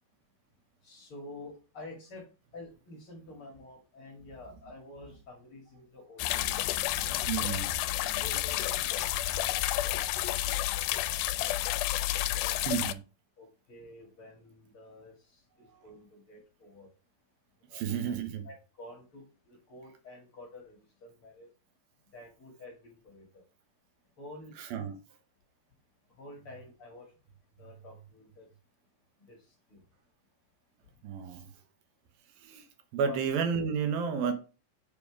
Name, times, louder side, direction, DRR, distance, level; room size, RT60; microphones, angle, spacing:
voice 1, 0.8-2.2 2.5-6.6 7.0-7.5 8.1-9.4 9.8-11.5 12.0-12.9 13.4-16.9 17.7-21.5 22.1-23.4 24.2-24.5 26.2-27.1 27.6-28.5 29.3-29.4 29.7-29.8 33.1-33.2, left 2 dB, 45° left, 2.3 m, -50 dB
sound 1, 6.2-12.9, left 15 dB, 90° left, 2.4 m, -30 dB
voice 2, 7.3-7.8 12.6-13.0 17.7-18.5 24.6-25.0 31.0-31.5 32.4-32.7 32.9-34.3, right 7 dB, 85° right, 3.0 m, -31 dB
6.9 x 5.3 x 4.9 m
omnidirectional pair, 4.1 m